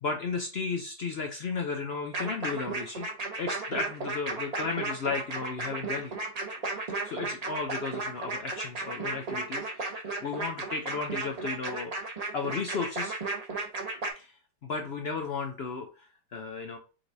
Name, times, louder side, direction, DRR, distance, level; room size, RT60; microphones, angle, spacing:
voice 1, 0.0-3.1 3.4-6.1 7.0-11.9 12.3-13.2 14.2-16.8, left 4 dB, 65° left, 4 dB, 0.6 m, -34 dB
sound 1, 2.1-14.1, right 3 dB, 35° right, 0.6 m, -34 dB
4.6 x 3.8 x 2.6 m, 0.34 s
omnidirectional pair, 1.8 m